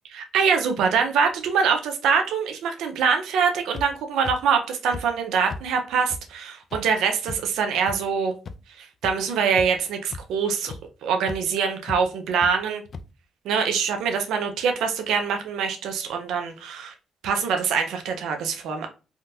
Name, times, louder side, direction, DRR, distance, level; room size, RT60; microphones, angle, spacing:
voice 1, 0.1-8.3 8.8-10.8 11.0-12.8 13.4-16.9 17.2-18.9, right 6 dB, 85° right, 0.6 m, -24 dB
sound 1, 3.7-3.9 4.2-4.4 4.9-5.0 5.5-5.6 6.1-6.2 6.7-6.8 7.3-7.4 7.9-8.0 8.5-8.6 9.0-9.1 9.5-9.8 10.1-10.2 10.7-10.8 11.3-11.4 11.9-12.0 12.4-12.5 12.9-13.0, left 4 dB, 50° left, 0.3 m, -34 dB
3.6 x 2.2 x 2.6 m
cardioid pair, 90°, 0 cm